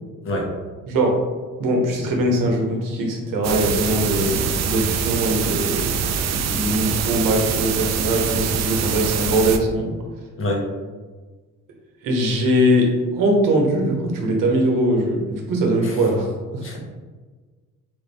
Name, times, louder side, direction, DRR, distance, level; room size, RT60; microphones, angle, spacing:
voice 1, 0.2-0.5 10.4-10.6 15.8-16.0 16.6-16.8, left 1 dB, 40° left, -2 dB, 1.1 m, -26 dB
voice 2, 1.6-5.9 6.3-9.9 12.0-16.3 16.5-16.6, right 1 dB, 75° right, 1 dB, 0.9 m, -21 dB
sound 1, 3.4-9.6, right 7 dB, 50° right, 0.4 m, -24 dB
3.5 x 2.5 x 3.3 m, 1.4 s
supercardioid pair, 75°, 33 cm